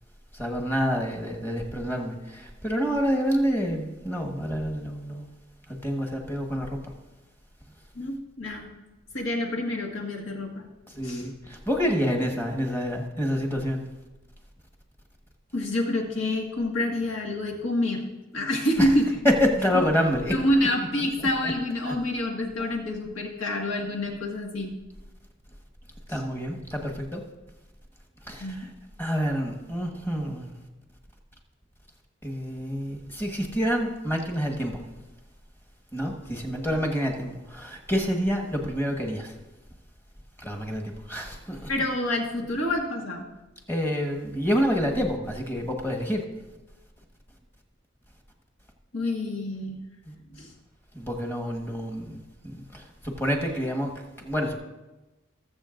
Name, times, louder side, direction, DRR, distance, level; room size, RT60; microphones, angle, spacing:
voice 1, 0.3-5.2 5.7-6.9 10.9-13.9 18.8-18.9 19.2-20.3 21.2-21.5 21.8-21.9 26.1-27.2 28.2-28.7 29.0-30.5 32.2-34.8 35.9-39.3 40.4-41.7 43.7-46.2 50.0-50.1 50.9-52.2 52.4-53.9 54.2-54.6, equal, 10° left, 1 dB, 1.4 m, -28 dB
voice 2, 8.0-8.7 9.1-10.7 11.0-11.2 15.5-18.0 18.3-19.0 20.3-24.7 28.4-28.7 41.7-43.2 48.9-49.8 50.3-50.5, left 1 dB, 85° left, 1 dB, 1.8 m, -27 dB
20.0 x 7.4 x 2.6 m, 1.1 s
head